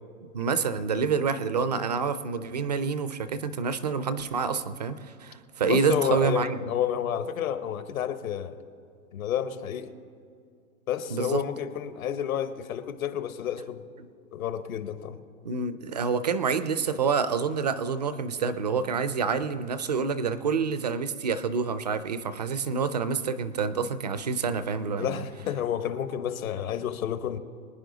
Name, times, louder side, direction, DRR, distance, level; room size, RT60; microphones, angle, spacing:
voice 1, 0.3-6.6 11.1-11.4 15.4-25.2, right 5 dB, 30° right, 0.4 m, -27 dB
voice 2, 5.7-8.6 9.1-9.9 10.9-13.9 14.3-15.2 25.0-27.4, left 9 dB, 70° left, 1.2 m, -30 dB
24.0 x 9.9 x 3.9 m
hypercardioid pair, 160°, 43 cm